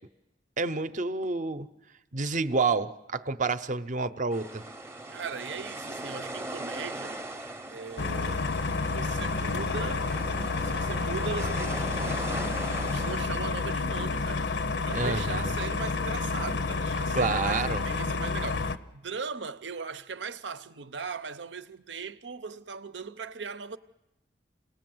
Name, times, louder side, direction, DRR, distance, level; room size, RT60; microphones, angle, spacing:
voice 1, 0.6-1.7 2.1-4.6 14.9-15.6 17.1-17.8, right 3 dB, 45° right, 0.8 m, -29 dB
sound 1, 4.3-13.2, right 2 dB, 15° right, 0.7 m, -39 dB
voice 2, 5.1-7.2 7.7-8.4 8.9-10.1 10.6-12.3 12.9-23.8, right 5 dB, 90° right, 0.8 m, -39 dB
sound 2, 8.0-18.8, left 3 dB, 80° left, 0.8 m, -30 dB
28.0 x 19.0 x 7.8 m
head